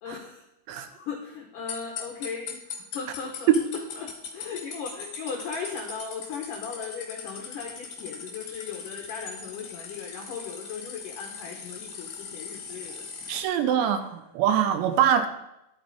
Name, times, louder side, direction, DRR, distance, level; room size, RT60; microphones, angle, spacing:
voice 1, 0.0-14.1, left 6 dB, 75° left, 1 dB, 1.9 m, -38 dB
sound 1, 1.7-13.4, left 5 dB, 60° left, 2.2 m, -40 dB
voice 2, 13.3-14.0 14.3-15.3, right 9 dB, 80° right, 8 dB, 2.8 m, -23 dB
11.5 x 9.7 x 4.2 m, 0.87 s
omnidirectional pair, 5.4 m